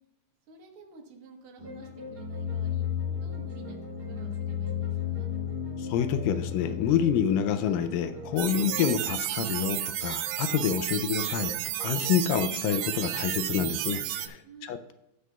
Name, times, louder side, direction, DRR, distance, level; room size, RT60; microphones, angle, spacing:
voice 1, 0.5-2.9 3.2-5.3 14.3-14.9, right 6 dB, 55° right, 1 dB, 1.6 m, -50 dB
sound 1, 1.6-8.9, left 7 dB, 20° right, 1.3 m, -34 dB
voice 2, 5.8-11.5 11.8-14.9, left 8 dB, 80° left, 10 dB, 2.2 m, -28 dB
sound 2, 8.4-14.3, right 13 dB, 80° right, 2.2 m, -32 dB
16.5 x 6.5 x 2.3 m, 0.88 s
omnidirectional pair, 4.0 m